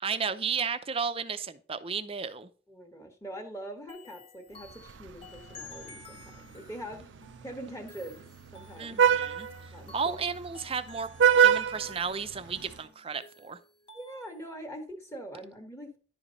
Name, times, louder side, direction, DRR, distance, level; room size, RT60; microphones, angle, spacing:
voice 1, 0.0-2.5 8.8-9.5 9.9-11.1 11.4-13.6, right 5 dB, 30° right, 12 dB, 0.6 m, -33 dB
voice 2, 2.7-7.1 7.4-8.2 8.5-9.0 9.7-10.2 13.9-16.0, right 1 dB, 15° left, 4 dB, 1.5 m, -43 dB
sound 1, 3.9-14.6, left 3 dB, 30° left, 1.1 m, -52 dB
Vehicle horn car horn honking, 4.7-12.8, right 8 dB, 80° right, 0.5 m, -29 dB
11.0 x 5.0 x 4.0 m, 0.40 s
head